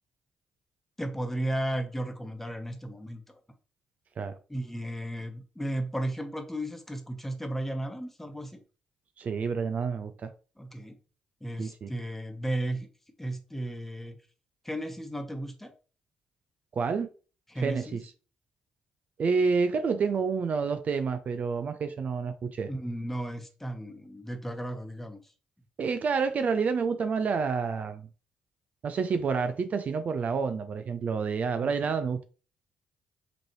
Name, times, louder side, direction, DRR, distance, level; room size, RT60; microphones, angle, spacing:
voice 1, 1.0-3.4 4.5-8.6 10.6-10.9 11.4-12.9 13.2-14.2 14.6-15.7 17.5-18.0 22.7-25.3 31.6-31.7, right 1 dB, 10° left, 1.1 m, -34 dB
voice 2, 9.2-10.3 11.6-11.9 16.7-17.1 17.6-18.0 19.2-22.7 25.8-28.1 28.8-32.2, right 5 dB, 55° right, 0.4 m, -28 dB
5.0 x 3.2 x 3.0 m
hypercardioid pair, 45°, 3 cm